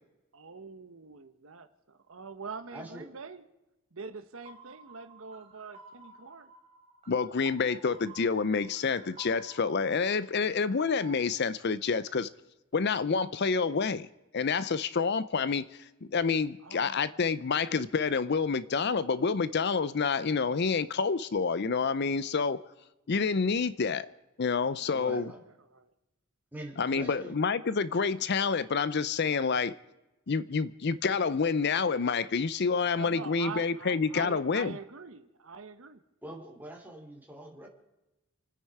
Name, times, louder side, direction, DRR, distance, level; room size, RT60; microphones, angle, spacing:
voice 1, 0.3-3.4 3.9-6.5 16.6-17.2 24.6-24.8 25.7-25.9 32.9-36.0, right 5 dB, 65° right, 1.1 m, -44 dB
voice 2, 2.7-3.1 24.8-25.4 26.5-27.3 36.2-37.7, right 1 dB, 10° right, 3.2 m, -44 dB
sound 1, 4.5-11.3, right 2 dB, 30° right, 2.0 m, -53 dB
voice 3, 7.1-12.3 12.7-14.1 14.3-22.6 23.1-24.1 24.4-25.3 26.8-29.7 30.3-34.7, left 5 dB, 50° left, 0.5 m, -28 dB
29.0 x 9.9 x 4.8 m
head